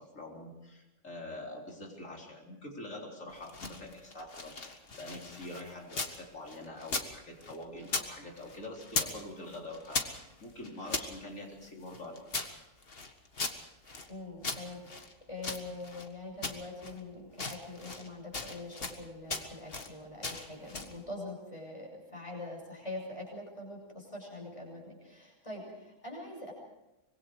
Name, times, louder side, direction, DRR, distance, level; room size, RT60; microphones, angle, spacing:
voice 1, 0.0-12.5, left 1 dB, 80° left, 0 dB, 4.5 m, -45 dB
sound 1, 3.3-6.2 6.5-8.1 8.4-9.2 9.5-11.1 11.6-14.1 14.4-16.1 16.4-17.0 17.3-18.1 18.3-19.0 19.3-19.9 20.2-21.0, left 3 dB, 50° left, 1.9 m, -38 dB
voice 2, 14.1-26.5, left 2 dB, 25° left, -1 dB, 6.4 m, -44 dB
25.0 x 21.5 x 4.9 m, 0.96 s
omnidirectional pair, 1.3 m